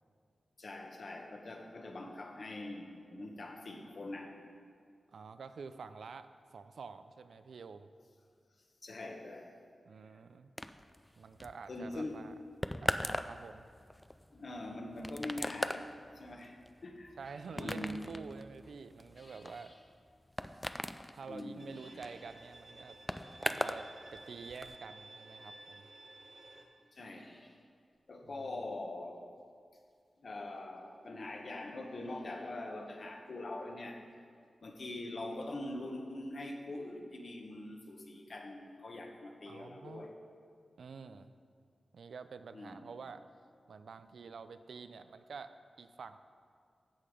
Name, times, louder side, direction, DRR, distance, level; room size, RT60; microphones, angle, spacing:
voice 1, 0.6-4.4 8.8-9.5 11.7-12.2 14.3-16.6 16.8-17.2 17.6-18.0 21.3-21.7 26.9-27.3 28.1-29.2 30.2-34.0 34.6-40.1 42.5-42.9, left 2 dB, 50° left, 2 dB, 1.3 m, -43 dB
voice 2, 5.1-7.9 9.9-10.5 11.2-12.3 12.8-13.6 17.2-19.8 21.1-23.0 23.4-25.9 28.2-28.6 39.5-40.0 40.8-41.3 41.9-43.2 43.7-46.2, right 5 dB, 85° right, 10 dB, 0.5 m, -48 dB
sound 1, 10.6-23.9 24.1-24.8, left 1 dB, 10° left, 0.3 m, -40 dB
sound 2, 17.2-17.8 18.7-19.9 21.6-22.4 22.8-22.9 23.7-23.8 25.5-25.6 26.0-26.1 26.4-26.5 26.8-27.6 27.9-28.0 28.2-28.3 29.9-30.0 30.8-30.9 31.1-31.2 31.7-32.7 33.0-33.1 33.6-33.7 34.1-34.2 35.9-36.0 36.2-36.3 36.7-36.8, left 1 dB, 35° left, 1.5 m, -63 dB
Bowed string instrument, 21.6-26.6, right 2 dB, 45° right, 1.4 m, -54 dB
13.0 x 7.7 x 5.0 m, 2.2 s
wide cardioid pair, 135°, 0 cm